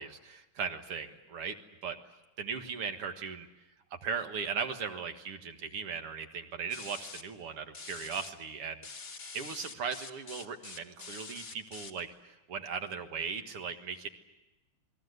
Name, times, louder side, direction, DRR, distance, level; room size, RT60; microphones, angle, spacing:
voice 1, 0.0-1.6 1.8-2.0 2.4-3.5 3.9-8.9 9.3-14.1, right 6 dB, 50° right, 7 dB, 2.0 m, -38 dB
sound 1, 6.7-7.2 7.7-8.3 8.8-12.0, left 4 dB, 30° left, 1.6 m, -45 dB
29.0 x 21.5 x 8.1 m, 1.0 s
omnidirectional pair, 4.0 m